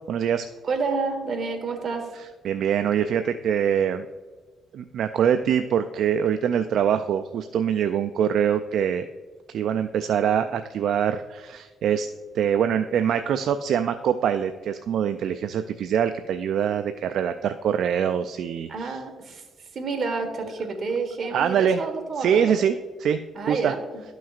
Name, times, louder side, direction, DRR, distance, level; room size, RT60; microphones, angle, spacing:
voice 1, 0.1-0.5 2.2-4.1 4.7-9.1 9.5-12.1 12.3-19.0 21.3-21.8 22.2-23.7, right 8 dB, 70° right, 9 dB, 0.3 m, -24 dB
voice 2, 0.6-2.1 18.7-19.4 19.7-22.5 23.3-24.0, right 4 dB, 50° right, 5 dB, 1.3 m, -29 dB
12.0 x 6.1 x 2.4 m, 1.4 s
cardioid pair, 90°, 0 cm